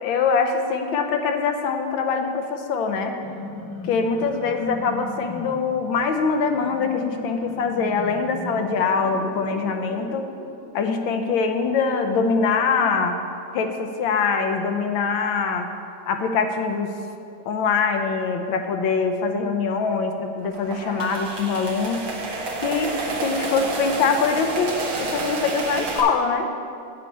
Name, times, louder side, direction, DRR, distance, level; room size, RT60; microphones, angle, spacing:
voice 1, 0.0-3.2 3.9-10.2 10.7-13.2 13.5-15.7 16.1-16.9 17.5-22.0 22.6-26.6, left 5 dB, 85° left, 6 dB, 1.5 m, -23 dB
sound 1, 3.0-10.9, left 2 dB, 15° left, 0.6 m, -38 dB
sound 2, 20.4-26.0, right 3 dB, 60° right, 1.8 m, -29 dB
8.7 x 8.4 x 5.3 m, 2.4 s
omnidirectional pair, 2.1 m